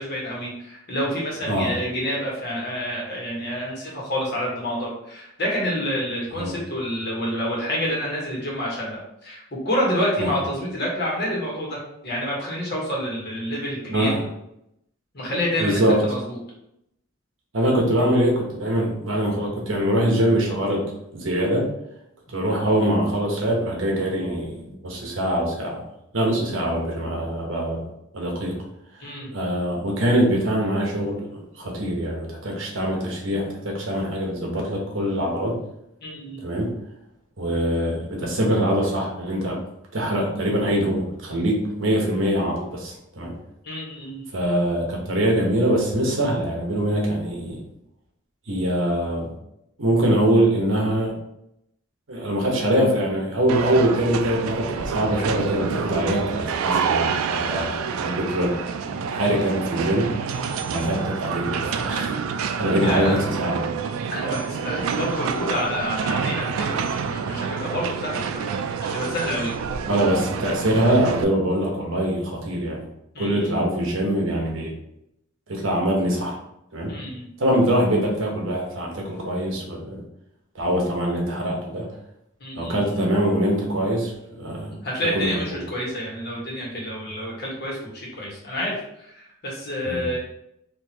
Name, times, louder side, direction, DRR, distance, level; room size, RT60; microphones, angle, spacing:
voice 1, 0.0-14.2 15.1-16.4 26.3-26.5 29.0-29.3 36.0-36.4 43.6-44.2 60.4-60.9 62.8-63.2 64.1-69.5 73.1-73.5 76.9-77.2 82.4-83.0 84.8-90.2, equal, 50° left, -4 dB, 1.3 m, -28 dB
voice 2, 15.6-16.0 17.5-20.8 21.1-21.7 22.3-25.8 26.1-27.9 28.1-28.6 29.3-35.6 36.4-36.7 37.4-39.6 39.9-43.3 44.3-47.6 48.5-49.3 49.8-51.1 52.1-58.5 58.8-60.1 60.7-62.1 62.6-63.7 69.9-72.9 73.2-74.7 75.5-76.4 76.7-76.9 77.4-80.0 80.5-81.9 82.6-84.8 85.1-85.6 89.8-90.1, right 1 dB, 70° right, -1 dB, 1.0 m, -23 dB
sound 1, 53.5-71.2, right 6 dB, 90° right, 0.3 m, -28 dB
4.3 x 2.7 x 2.8 m, 0.81 s
head